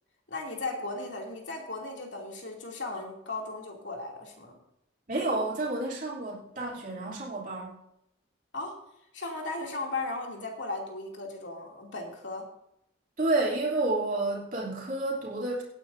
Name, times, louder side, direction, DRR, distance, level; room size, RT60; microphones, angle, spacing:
voice 1, 0.3-4.6 8.5-8.7 9.1-12.5, left 2 dB, 70° left, 0 dB, 2.8 m, -36 dB
voice 2, 5.1-7.7 13.2-15.6, right 2 dB, 45° right, -4 dB, 3.1 m, -30 dB
18.0 x 9.8 x 2.7 m, 0.79 s
head